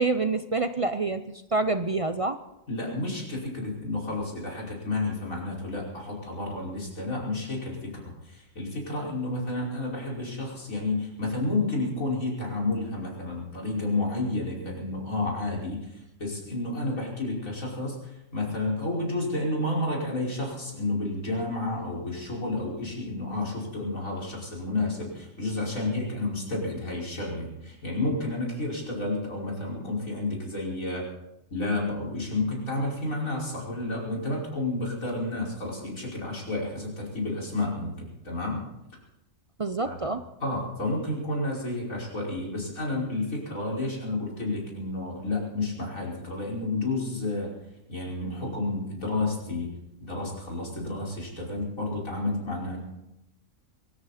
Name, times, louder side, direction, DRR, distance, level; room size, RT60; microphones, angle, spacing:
voice 1, 0.0-2.4 39.6-40.2, right 3 dB, 45° right, 10 dB, 0.4 m, -27 dB
voice 2, 2.7-31.1 31.5-38.6 39.8-40.1 40.4-47.5 47.9-52.8, left 2 dB, 75° left, -2 dB, 5.6 m, -31 dB
23.5 x 14.0 x 4.2 m, 0.88 s
omnidirectional pair, 1.4 m